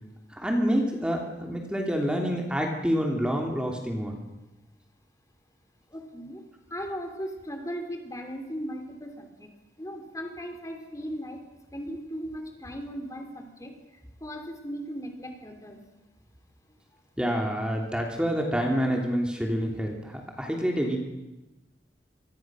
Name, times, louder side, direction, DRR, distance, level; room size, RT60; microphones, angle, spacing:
voice 1, 0.3-4.2 17.2-21.0, equal, 5° right, 1 dB, 3.0 m, -27 dB
voice 2, 5.9-6.4 6.7-9.5 9.8-11.4 11.7-13.7 14.2-15.8, equal, 20° left, 4 dB, 3.2 m, -37 dB
26.5 x 22.5 x 6.3 m, 1.0 s
head